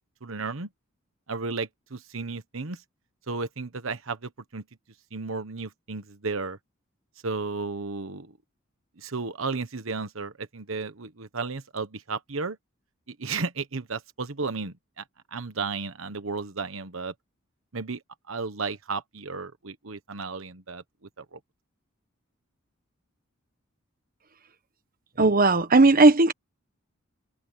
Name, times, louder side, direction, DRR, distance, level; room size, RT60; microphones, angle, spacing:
voice 1, 0.2-0.7 1.3-2.8 3.3-4.6 5.1-6.6 7.2-8.3 9.0-12.6 13.1-15.0 15.3-17.1 17.7-18.0 18.3-20.8 21.2-21.4, right 4 dB, 70° right, 1.2 m, -33 dB
voice 2, 25.2-26.3, right 2 dB, 45° right, 1.3 m, -17 dB
head